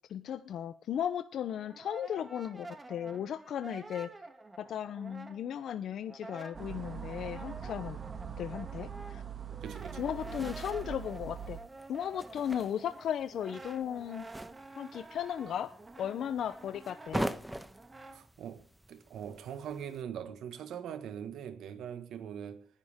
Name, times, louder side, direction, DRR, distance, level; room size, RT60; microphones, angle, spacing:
voice 1, 0.1-4.1 4.6-8.0 8.4-9.2 10.0-11.6 11.9-14.3 14.8-15.7 16.0-17.3, left 9 dB, 70° left, 0.7 m, -36 dB
Brass instrument, 1.3-5.7 6.0-18.2, right 2 dB, 25° right, 2.3 m, -49 dB
sound 1, 6.5-11.6, right 8 dB, 40° right, 2.3 m, -42 dB
voice 2, 9.5-10.1 18.1-22.7, right 8 dB, 75° right, 1.6 m, -42 dB
sound 2, 9.7-20.0, right 1 dB, 5° right, 1.2 m, -43 dB
19.5 x 11.0 x 3.7 m
cardioid pair, 90°, 0 cm